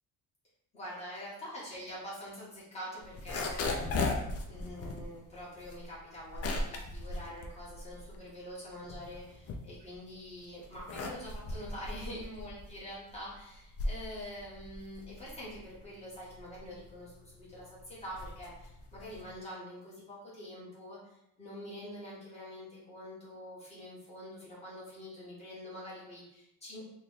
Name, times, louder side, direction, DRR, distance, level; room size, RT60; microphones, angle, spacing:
voice 1, 0.7-4.1 4.5-26.8, equal, 15° left, -8 dB, 1.4 m, -45 dB
sound 1, 3.0-8.3 8.7-10.1 10.6-19.4, left 2 dB, 40° left, 0.4 m, -38 dB
3.3 x 2.4 x 3.9 m, 0.81 s
cardioid pair, 180°, 38 cm